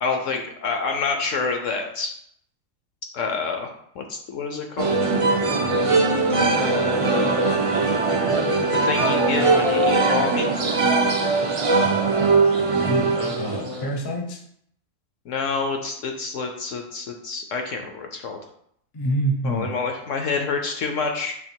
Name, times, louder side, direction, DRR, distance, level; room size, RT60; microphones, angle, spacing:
voice 1, 0.0-2.1 3.1-5.1 6.6-7.6 8.7-10.5 13.2-13.9 15.3-18.4 19.4-21.3, left 4 dB, 65° left, 4 dB, 0.9 m, -28 dB
sound 1, 4.8-13.9, right 3 dB, 50° right, 0.4 m, -21 dB
voice 2, 12.8-14.4 18.9-19.8, right 1 dB, 25° left, 2 dB, 0.5 m, -27 dB
6.5 x 3.3 x 4.5 m, 0.69 s
omnidirectional pair, 1.7 m